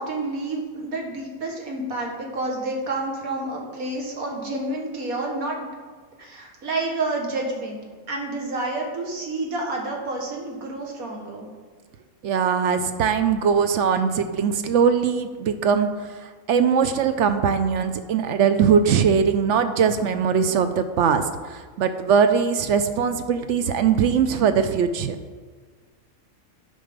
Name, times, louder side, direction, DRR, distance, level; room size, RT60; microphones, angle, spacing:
voice 1, 0.0-5.7 6.2-7.8 8.1-11.5, right 2 dB, 85° right, 0 dB, 1.9 m, -29 dB
voice 2, 12.2-15.9 16.5-25.2, right 6 dB, 65° right, 9 dB, 0.8 m, -21 dB
9.2 x 5.4 x 5.1 m, 1.5 s
omnidirectional pair, 1.5 m